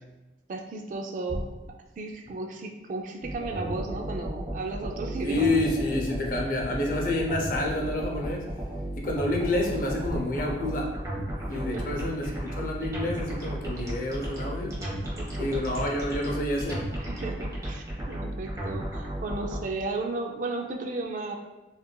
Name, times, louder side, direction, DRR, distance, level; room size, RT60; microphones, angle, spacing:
voice 1, 0.5-5.6 9.6-9.9 11.7-12.0 15.2-15.6 17.0-21.4, right 3 dB, 45° right, 3 dB, 0.3 m, -35 dB
sound 1, 3.2-19.6, right 1 dB, 20° right, 0.8 m, -34 dB
voice 2, 5.2-8.5 9.0-11.0 11.5-14.8 15.4-16.9, left 1 dB, 50° left, 0 dB, 0.5 m, -28 dB
4.4 x 2.4 x 2.2 m, 1.0 s
head